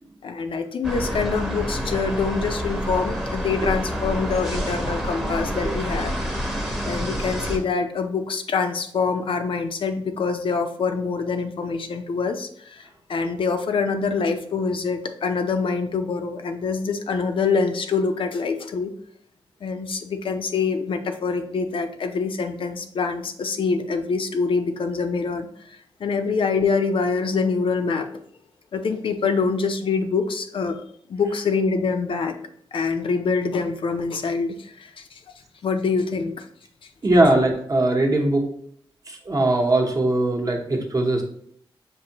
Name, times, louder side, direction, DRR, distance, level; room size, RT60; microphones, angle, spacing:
voice 1, 0.2-6.2 6.4-6.6 6.8-18.9 19.6-28.1 28.7-30.8 31.1-32.4 32.7-35.2 35.6-36.4, left 4 dB, 70° left, 6 dB, 0.4 m, -25 dB
sound 1, 0.8-7.6, equal, 5° right, 0.7 m, -28 dB
voice 2, 37.0-38.5 39.1-41.2, right 2 dB, 40° right, 2 dB, 0.8 m, -20 dB
5.9 x 2.6 x 2.9 m, 0.64 s
wide cardioid pair, 110°, 9 cm